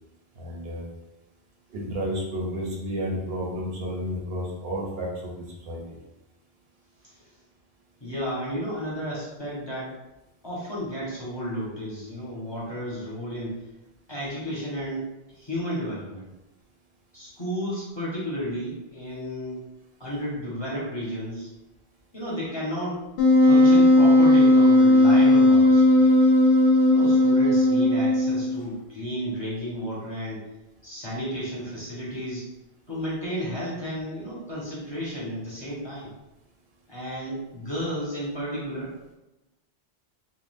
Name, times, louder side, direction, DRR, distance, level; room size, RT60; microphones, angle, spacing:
voice 1, 0.4-0.8 1.7-6.0, equal, 70° right, -2 dB, 0.9 m, -31 dB
voice 2, 8.0-9.9 10.4-13.6 14.1-15.1 15.4-16.3 17.1-19.6 20.0-21.5 22.1-23.0 23.4-26.1 26.9-30.4 30.8-32.5 32.9-36.1 36.9-38.9, equal, 25° left, -8 dB, 0.8 m, -32 dB
Wind instrument woodwind instrument, 23.2-28.6, left 1 dB, 70° left, 0.7 m, -17 dB
2.5 x 2.3 x 3.3 m, 0.98 s
omnidirectional pair, 1.1 m